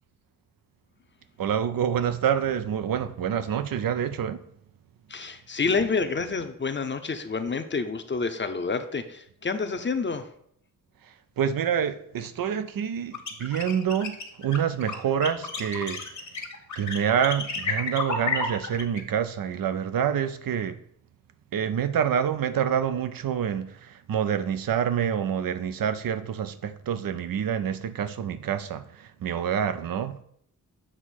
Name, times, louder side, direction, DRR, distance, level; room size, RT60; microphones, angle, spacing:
voice 1, 1.4-4.4 11.0-16.3 16.8-20.8 21.5-30.2, right 8 dB, 90° right, 0.6 m, -27 dB
voice 2, 5.1-10.3, left 4 dB, 35° left, 0.6 m, -28 dB
sound 1, 13.1-19.0, left 4 dB, 60° left, 1.2 m, -31 dB
7.6 x 3.1 x 6.2 m
wide cardioid pair, 100°, 33 cm